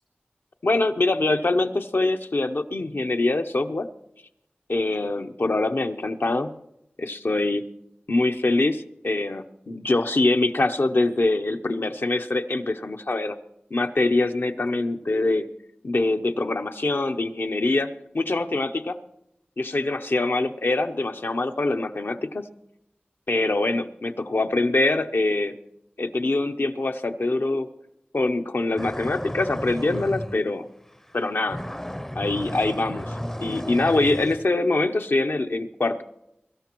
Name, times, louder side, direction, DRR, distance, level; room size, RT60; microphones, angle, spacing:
voice 1, 0.6-3.9 4.7-6.5 7.0-7.6 8.1-13.4 13.7-15.5 15.8-19.0 19.6-22.4 23.3-25.5 26.0-27.7 28.1-30.7 31.1-31.6 32.2-36.0, left 2 dB, 70° left, 7 dB, 0.7 m, -24 dB
sound 1, 28.8-30.4 30.9-31.2 31.5-34.5, equal, 10° left, 0.5 m, -33 dB
22.5 x 13.0 x 3.0 m, 0.85 s
wide cardioid pair, 40°, 4 cm